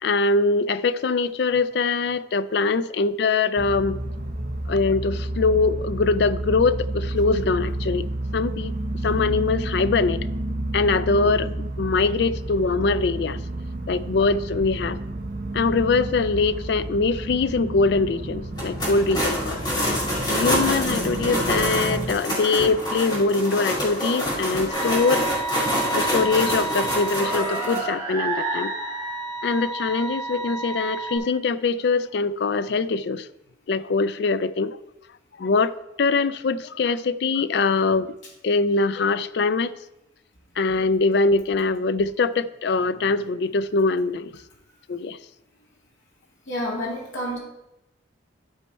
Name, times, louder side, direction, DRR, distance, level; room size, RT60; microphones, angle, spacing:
voice 1, 0.0-4.0 4.7-8.1 8.3-8.7 9.0-10.3 10.7-13.4 13.9-15.0 15.5-19.6 20.3-25.3 25.9-28.7 29.4-33.3 33.7-34.8 35.4-38.1 38.4-39.7 40.6-44.3 44.9-45.2, left 3 dB, 60° left, 14 dB, 0.4 m, -23 dB
sound 1, 3.6-22.1, right 1 dB, 45° right, 0.7 m, -30 dB
sound 2, 18.5-27.8, equal, 20° left, 2.2 m, -26 dB
sound 3, 24.7-31.2, right 3 dB, 10° right, 2.1 m, -30 dB
voice 2, 46.5-47.4, equal, 75° left, -3 dB, 2.5 m, -29 dB
12.0 x 4.2 x 4.4 m, 0.89 s
head